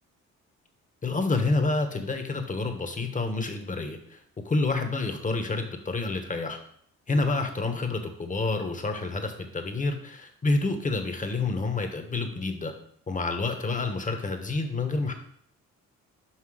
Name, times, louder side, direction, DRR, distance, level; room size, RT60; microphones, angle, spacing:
voice 1, 1.0-4.2 4.4-6.6 7.1-12.7 13.1-15.1, left 3 dB, 25° left, 6 dB, 1.2 m, -28 dB
5.9 x 5.3 x 5.0 m, 0.65 s
cardioid pair, 90°, 30 cm